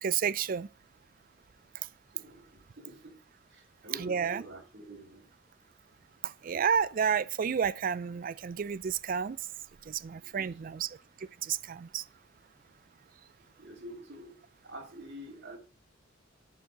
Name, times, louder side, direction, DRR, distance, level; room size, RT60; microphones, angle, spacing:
voice 1, 0.0-0.7 4.0-4.4 6.2-9.4 9.9-10.9 11.4-12.0, right 7 dB, 45° right, 0.4 m, -30 dB
voice 2, 2.1-3.2 3.5-5.3 10.2-10.8 13.6-15.6, right 1 dB, 60° right, 2.6 m, -48 dB
11.0 x 5.6 x 3.8 m
head